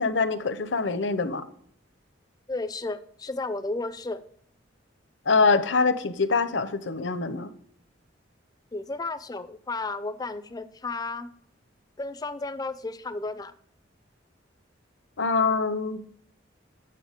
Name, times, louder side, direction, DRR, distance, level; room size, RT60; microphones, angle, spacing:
voice 1, 0.0-1.4 5.3-7.5 15.2-16.0, left 4 dB, 65° left, 11 dB, 0.7 m, -24 dB
voice 2, 2.5-4.2 8.7-11.3 12.0-13.5, left 3 dB, 20° left, 12 dB, 0.4 m, -33 dB
9.3 x 7.0 x 3.6 m, 0.65 s
head